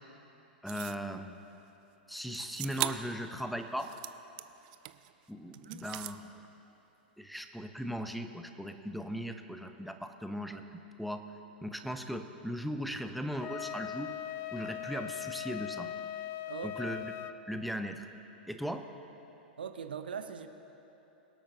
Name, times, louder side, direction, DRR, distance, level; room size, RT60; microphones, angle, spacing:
voice 1, 0.6-1.3 2.1-3.9 5.3-6.4 7.2-11.2 11.6-14.1 14.5-15.9 16.6-17.1 17.5-18.1 18.5-18.8, equal, ahead, 7 dB, 0.6 m, -38 dB
sound 1, 0.7-1.1 2.3-3.2 3.6-5.1 5.5-6.2, right 17 dB, 45° right, 0.4 m, -39 dB
Wind instrument woodwind instrument, 13.4-17.4, left 11 dB, 35° left, 0.4 m, -40 dB
voice 2, 16.5-16.9 19.6-20.5, right 7 dB, 70° right, 8 dB, 0.8 m, -40 dB
24.0 x 8.5 x 2.8 m, 3.0 s
figure-of-eight pair, 100°, 5 cm